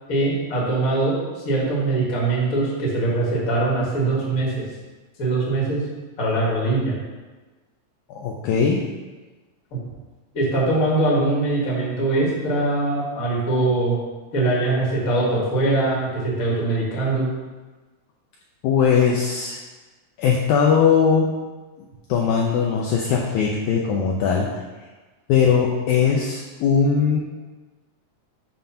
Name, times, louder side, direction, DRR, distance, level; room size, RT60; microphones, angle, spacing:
voice 1, 0.1-4.6 5.2-5.8 6.2-6.9 10.3-14.0 14.3-17.3, right 2 dB, 45° left, -5 dB, 1.1 m, -22 dB
voice 2, 8.1-8.8 18.6-19.6 20.2-21.3 22.1-24.5 25.3-27.2, left 6 dB, 85° left, -1 dB, 1.7 m, -19 dB
7.2 x 2.6 x 5.6 m, 1.3 s
omnidirectional pair, 4.0 m